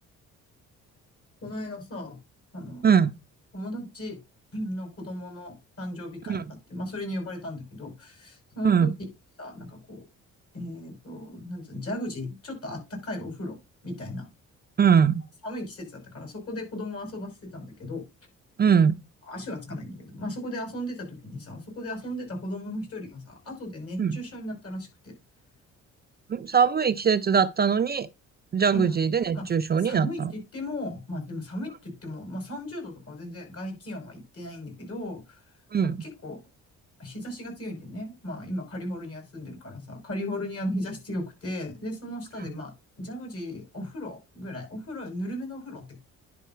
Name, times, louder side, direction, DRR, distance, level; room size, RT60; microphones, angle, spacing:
voice 1, 1.4-2.2 2.5-2.9 3.5-4.2 4.5-6.4 6.7-8.9 9.4-10.0 10.5-13.6 13.8-14.3 15.4-18.0 19.3-25.1 28.7-29.0 29.3-29.5 29.8-35.4 35.8-36.4 37.0-42.7 43.0-46.0, left 1 dB, 50° left, 5.7 m, -36 dB
voice 2, 14.8-15.2 18.6-18.9 24.0-24.2 26.3-28.1 28.5-30.3 35.7-36.0, right 7 dB, 35° right, 0.5 m, -21 dB
10.5 x 4.2 x 5.6 m
cardioid pair, 90°, 30 cm